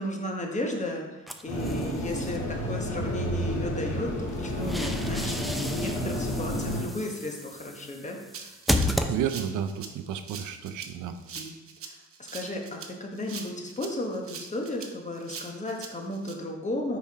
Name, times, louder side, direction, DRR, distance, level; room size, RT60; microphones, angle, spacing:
voice 1, 0.0-8.5 11.1-11.5 11.8-17.0, left 1 dB, 25° left, 1 dB, 1.2 m, -34 dB
sound 1, 1.3-2.4 4.3-9.7, left 1 dB, ahead, 0.5 m, -33 dB
sound 2, 1.5-6.8, equal, 70° left, 2.0 m, -30 dB
Rattle (instrument), 8.3-16.3, right 6 dB, 50° right, 0.8 m, -43 dB
voice 2, 9.1-11.2, right 9 dB, 85° right, 9 dB, 0.6 m, -31 dB
5.5 x 4.4 x 4.7 m, 1.1 s
cardioid pair, 90°, 30 cm